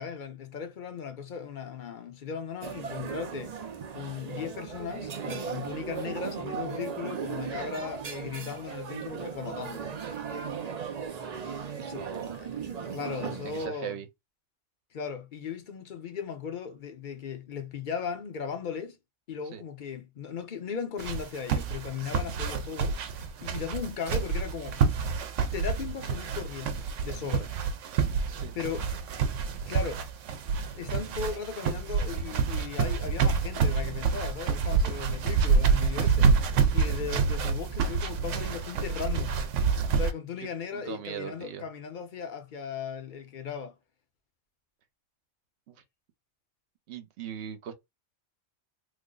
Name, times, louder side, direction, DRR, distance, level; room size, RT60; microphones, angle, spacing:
voice 1, 0.0-3.6 3.9-9.9 11.8-12.1 12.4-12.5 12.8-14.0 14.9-19.0 19.3-23.0 23.4-24.8 25.5-27.5 28.5-28.9 29.7-30.0 30.7-36.3 36.7-39.4 39.9-43.7, left 6 dB, 50° left, 0.8 m, -37 dB
sound 1, 2.6-13.7, right 7 dB, 50° right, 0.5 m, -37 dB
voice 2, 11.8-12.4 13.2-14.1 19.5-19.6 28.3-28.5 40.7-41.7 45.7-45.8 46.9-47.7, right 8 dB, 70° right, 1.0 m, -40 dB
sound 2, 21.0-40.1, right 5 dB, 90° right, 0.9 m, -27 dB
3.4 x 2.1 x 3.7 m
omnidirectional pair, 1.2 m